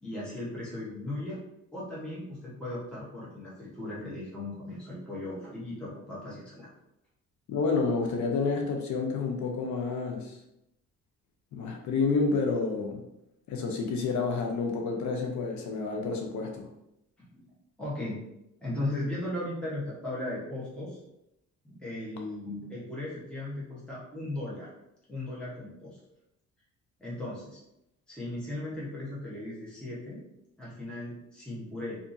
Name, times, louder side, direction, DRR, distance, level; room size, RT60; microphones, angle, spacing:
voice 1, 0.0-1.4 1.7-6.7 17.2-17.4 17.8-18.2 18.6-21.0 21.6-24.7 25.1-26.0 27.0-27.6 28.1-30.2 30.6-32.0, left 1 dB, 5° left, -7 dB, 0.9 m, -37 dB
voice 2, 7.5-10.4 11.5-13.0 13.5-16.7, left 4 dB, 70° left, 2 dB, 0.6 m, -29 dB
2.6 x 2.5 x 2.5 m, 0.84 s
cardioid pair, 90°, 30 cm